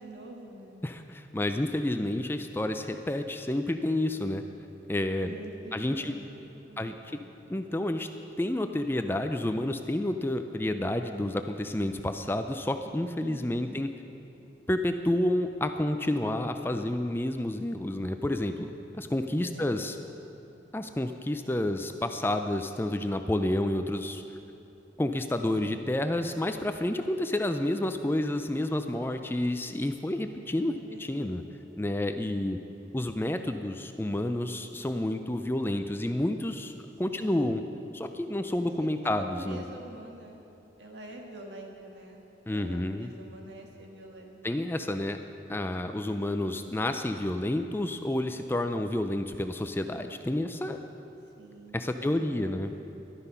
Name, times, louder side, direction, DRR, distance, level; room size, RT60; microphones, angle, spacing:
voice 1, 0.0-0.8 5.2-7.4 13.2-13.8 19.4-20.1 30.7-31.4 37.1-37.5 38.6-40.4 40.8-44.4 51.4-52.8, right 1 dB, 75° right, 1 dB, 1.9 m, -47 dB
voice 2, 0.8-4.4 4.9-5.3 5.7-6.1 6.8-6.9 7.5-8.1 8.4-13.9 14.7-20.0 20.7-24.2 25.0-31.4 31.8-32.6 32.9-36.7 37.0-37.6 37.9-39.6 42.5-43.1 44.4-45.2 45.5-50.8 51.7-52.7, left 1 dB, 10° left, 7 dB, 0.4 m, -30 dB
14.0 x 12.0 x 5.6 m, 2.8 s
head